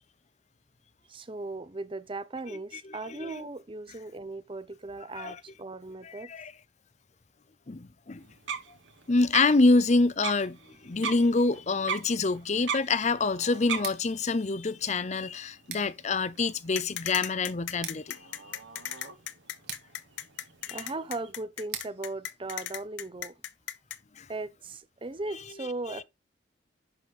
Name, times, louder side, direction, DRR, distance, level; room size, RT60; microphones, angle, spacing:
voice 1, 1.1-6.3 20.7-23.3 24.3-26.0, right 2 dB, 25° right, 0.7 m, -38 dB
voice 2, 2.8-3.4 5.2-5.4 6.0-6.5 7.7-8.2 9.1-18.2 20.7-20.8 24.2-24.3 25.9-26.0, left 3 dB, 35° left, 0.6 m, -26 dB
sound 1, 8.2-21.3, right 6 dB, 75° right, 1.6 m, -41 dB
Scissors, 13.7-23.5, right 9 dB, 60° right, 1.9 m, -48 dB
sound 2, 16.8-24.0, left 11 dB, 75° left, 0.8 m, -36 dB
10.5 x 4.1 x 4.2 m
head